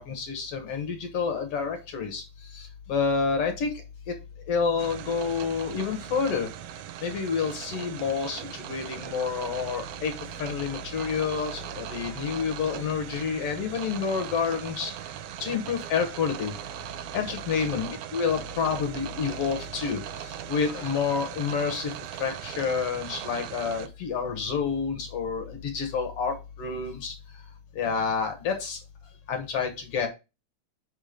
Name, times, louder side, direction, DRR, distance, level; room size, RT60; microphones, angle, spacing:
voice 1, 0.0-2.2 2.5-3.7 4.1-4.2 4.5-6.5 7.0-14.9 15.4-16.5 17.1-21.9 22.2-27.1 27.7-28.8 29.3-30.1, left 6 dB, 65° left, 7 dB, 1.6 m, -29 dB
sound 1, 4.8-23.9, right 12 dB, 80° right, 1.5 m, -39 dB
5.4 x 5.0 x 5.0 m, 0.27 s
omnidirectional pair, 3.7 m